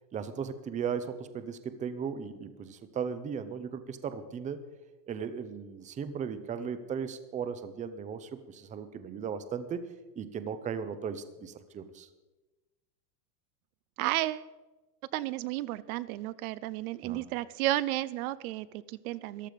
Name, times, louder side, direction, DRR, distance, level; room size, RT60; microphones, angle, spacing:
voice 1, 0.1-4.6 5.1-9.9 10.2-12.1 17.0-17.3, right 7 dB, 15° right, 12 dB, 0.7 m, -37 dB
voice 2, 14.0-14.5 15.1-19.5, right 16 dB, 65° right, 17 dB, 0.7 m, -32 dB
14.5 x 11.5 x 5.2 m, 1.1 s
supercardioid pair, 140°, 47 cm